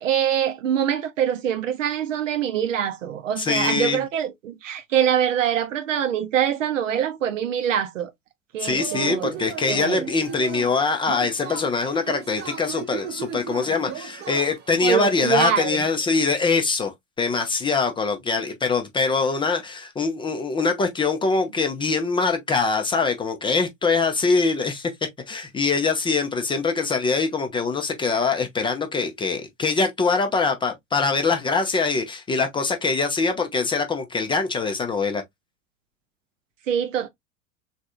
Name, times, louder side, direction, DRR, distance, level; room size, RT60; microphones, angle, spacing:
voice 1, 0.0-8.1 8.5-9.4 9.7-10.0 14.8-15.8 36.7-37.1, right 9 dB, 70° right, 0.7 m, -24 dB
voice 2, 3.4-4.0 8.6-24.9 25.3-35.2, left 4 dB, 15° left, 0.5 m, -23 dB
Yell / Cheering, 8.7-14.8, right 7 dB, 25° right, 0.8 m, -35 dB
3.4 x 2.6 x 2.3 m
figure-of-eight pair, 85°, 40 cm